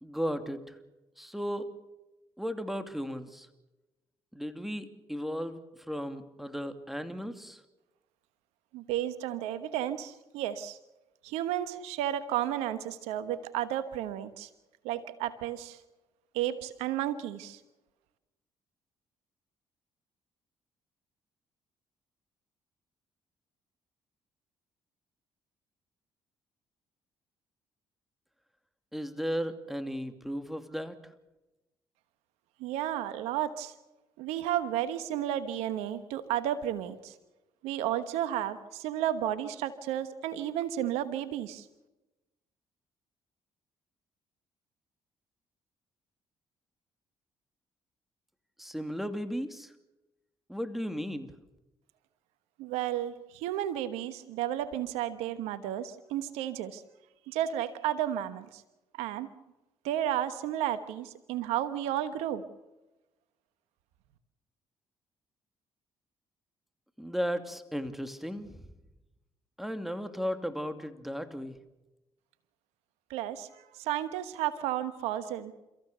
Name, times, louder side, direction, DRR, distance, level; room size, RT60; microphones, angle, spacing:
voice 1, 0.0-0.8 1.2-1.7 2.4-3.5 4.3-5.6 5.9-7.6 28.9-31.1 48.6-49.7 50.5-51.3 67.0-68.7 69.6-71.6, equal, ahead, 9 dB, 2.6 m, -35 dB
voice 2, 8.7-10.8 11.2-14.5 14.8-15.8 16.3-17.6 32.6-33.7 34.2-37.1 37.6-41.7 52.6-56.8 57.3-58.6 59.0-59.3 59.8-62.4 73.1-75.5, right 11 dB, 85° right, 13 dB, 1.2 m, -32 dB
30.0 x 15.0 x 6.8 m, 1.0 s
supercardioid pair, 55°, 11 cm